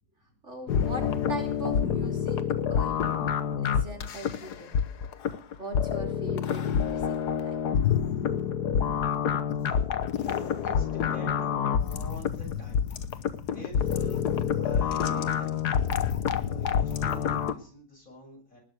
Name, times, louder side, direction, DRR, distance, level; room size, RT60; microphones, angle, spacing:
voice 1, 0.4-2.4 2.7-3.3 3.6-4.8 5.6-7.1 7.4-7.6, right 1 dB, 40° right, 2 dB, 3.4 m, -40 dB
sound 1, 0.7-17.5, left 8 dB, 70° left, 1.6 m, -27 dB
voice 2, 8.8-9.9 10.2-15.6 16.4-18.6, equal, 50° left, -1 dB, 7.4 m, -48 dB
19.5 x 6.6 x 9.4 m, 0.43 s
omnidirectional pair, 1.8 m